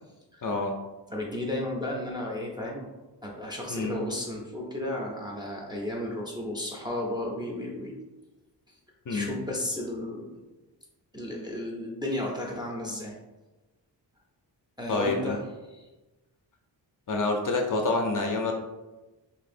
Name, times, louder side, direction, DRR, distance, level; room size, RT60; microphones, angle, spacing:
voice 1, 0.4-0.8 3.7-4.0 9.1-9.3 14.9-15.4 17.1-18.5, left 3 dB, 45° left, 2 dB, 0.5 m, -27 dB
voice 2, 1.1-2.9 3.2-7.9 9.1-10.4 11.1-13.2 14.8-15.4, left 1 dB, 10° right, -3 dB, 0.5 m, -33 dB
2.8 x 2.7 x 4.2 m, 1.1 s
wide cardioid pair, 155°, 44 cm